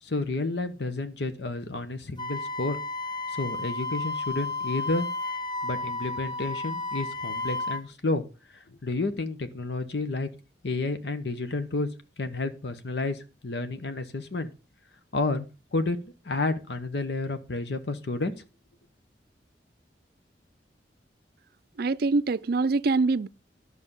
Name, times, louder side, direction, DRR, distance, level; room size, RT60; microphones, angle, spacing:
voice 1, 0.0-2.8 3.3-5.1 5.6-8.2 8.5-10.3 10.6-11.9 12.2-14.5 15.1-15.4 15.7-18.3, left 3 dB, 70° left, 1.0 m, -30 dB
Wind instrument woodwind instrument, 2.2-7.8, left 3 dB, 25° left, 0.7 m, -32 dB
voice 2, 21.8-23.3, right 3 dB, 60° right, 0.4 m, -24 dB
11.0 x 6.3 x 5.4 m
head